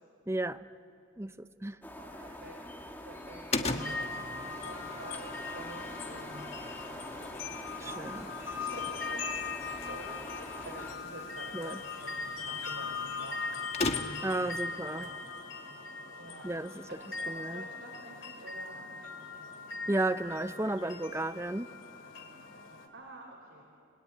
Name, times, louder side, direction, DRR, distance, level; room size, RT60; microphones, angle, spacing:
voice 1, 0.3-0.7 1.2-1.8 7.8-8.3 11.5-11.8 14.2-15.1 16.4-16.8 17.3-17.6 19.9-21.7, right 2 dB, 15° right, 12 dB, 0.6 m, -33 dB
sound 1, 1.8-11.0, left 1 dB, 10° left, 2.1 m, -44 dB
voice 2, 2.0-2.5 3.0-6.7 7.3-8.1 8.4-13.4 14.9-15.2 16.2-18.8 22.9-23.6, right 2 dB, 70° right, -1 dB, 4.2 m, -48 dB
sound 2, 3.5-14.4, left 3 dB, 35° left, 1.3 m, -41 dB
sound 3, 3.8-22.9, left 4 dB, 75° left, 2.7 m, -40 dB
30.0 x 21.5 x 9.2 m, 2.6 s
head